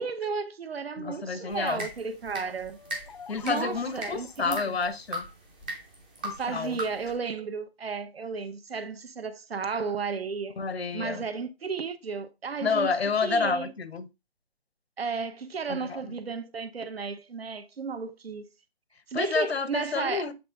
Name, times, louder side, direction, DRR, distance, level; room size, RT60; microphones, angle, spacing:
voice 1, 0.0-2.8 3.4-4.8 6.4-10.6 10.9-12.9 13.2-13.7 15.0-18.4 19.1-20.2, right 5 dB, 70° right, 1.0 m, -33 dB
voice 2, 1.0-1.9 3.3-5.3 6.2-6.8 10.6-11.3 12.6-14.1 15.7-16.2 19.1-20.3, left 5 dB, 75° left, 1.0 m, -29 dB
sound 1, 1.5-7.1, right 1 dB, 10° right, 0.6 m, -40 dB
sound 2, 2.7-4.5, left 6 dB, 40° left, 0.6 m, -48 dB
7.9 x 3.6 x 3.6 m
figure-of-eight pair, 155°, 31 cm